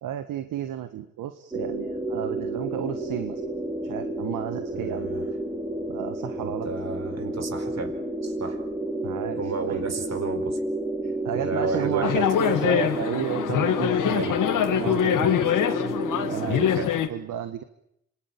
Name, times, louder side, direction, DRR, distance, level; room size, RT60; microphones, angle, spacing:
voice 1, 0.0-3.4 3.8-5.1 5.9-6.7 9.0-9.8 11.0-14.4 14.8-15.4 16.3-16.7 17.1-17.6, right 10 dB, 80° right, 9 dB, 1.5 m, -32 dB
sound 1, 1.5-16.9, right 1 dB, 15° right, 4.2 m, -31 dB
voice 2, 4.7-5.2 6.4-8.6 9.4-10.6 11.3-12.1 14.1-14.4 15.1-15.2 16.5-16.9, right 4 dB, 55° right, 8 dB, 4.7 m, -32 dB
sound 2, 12.0-17.1, left 9 dB, 75° left, 2.0 m, -24 dB
26.5 x 19.5 x 8.8 m, 0.78 s
supercardioid pair, 55°, 32 cm